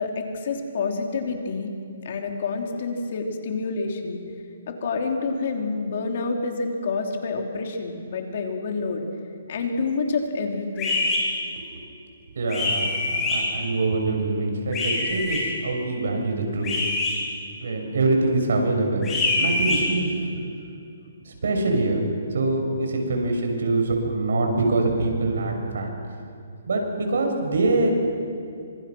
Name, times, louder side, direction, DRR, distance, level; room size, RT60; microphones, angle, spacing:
voice 1, 0.0-1.7 2.0-4.2 4.7-9.1 9.5-11.0, left 4 dB, 45° left, 3 dB, 3.4 m, -28 dB
sound 1, 10.8-11.2 12.5-13.4 14.7-15.4 16.6-17.1 19.0-19.8, left 2 dB, 15° left, 6.9 m, -24 dB
voice 2, 12.3-16.7 17.6-19.1 19.3-20.3 21.3-22.0 22.3-26.0 26.7-27.9, right 2 dB, 75° right, 3 dB, 6.3 m, -24 dB
27.0 x 26.0 x 6.2 m, 2.5 s
hypercardioid pair, 165°, 0 cm